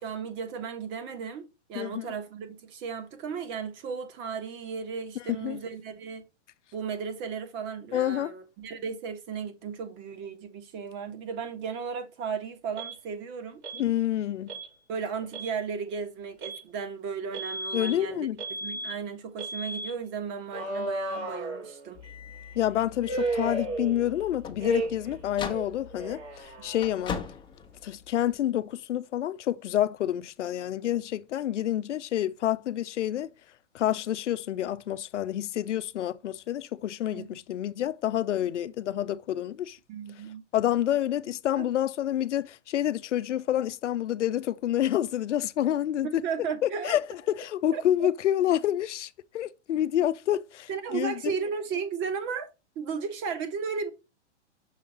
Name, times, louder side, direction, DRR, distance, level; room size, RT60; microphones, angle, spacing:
voice 1, 0.0-6.2 6.7-13.6 14.9-18.3 18.6-22.0 37.1-37.3 39.9-40.4 41.6-41.7 46.2-47.0 47.7-47.8 50.7-52.5 52.7-53.9, right 6 dB, 30° right, 1.6 m, -35 dB
voice 2, 1.7-2.1 5.4-5.6 7.9-8.3 13.7-14.5 17.7-18.4 22.6-27.2 27.8-33.3 33.7-39.8 40.5-46.1 46.6-47.0 47.3-51.3, left 12 dB, 85° left, 0.6 m, -28 dB
Alarm, 12.8-13.0 13.6-13.9 14.5-14.7 15.2-15.6 16.4-16.6 17.3-17.9 18.4-18.9 19.4-19.9 20.5-22.1 23.0-24.2 24.6-25.1 25.4-27.1, right 2 dB, 70° right, 4.9 m, -34 dB
sound 1, 21.9-28.5, left 6 dB, 15° left, 1.1 m, -41 dB
6.4 x 3.8 x 5.4 m
hypercardioid pair, 140°, 35 cm